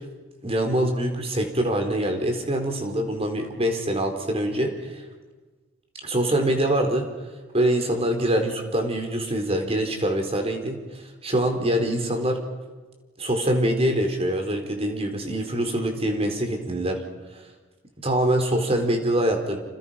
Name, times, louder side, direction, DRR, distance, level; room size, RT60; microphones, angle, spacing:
voice 1, 0.4-5.0 6.0-7.1 7.5-12.4 13.2-17.0 17.3-17.4 18.0-19.6, right 1 dB, 30° right, 4 dB, 4.4 m, -24 dB
29.5 x 28.0 x 5.9 m, 1.3 s
head